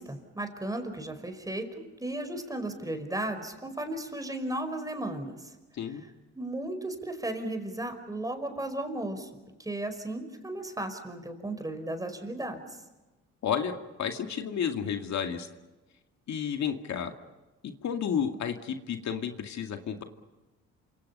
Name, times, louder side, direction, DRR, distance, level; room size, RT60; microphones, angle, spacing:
voice 1, 0.0-5.4 6.3-9.3 9.6-12.6, right 1 dB, 10° right, 7 dB, 5.1 m, -35 dB
voice 2, 13.4-13.7 14.0-15.5 16.3-17.1 17.8-20.0, left 8 dB, 65° left, 5 dB, 2.3 m, -31 dB
28.5 x 26.0 x 5.6 m, 1.1 s
cardioid pair, 90°, 30 cm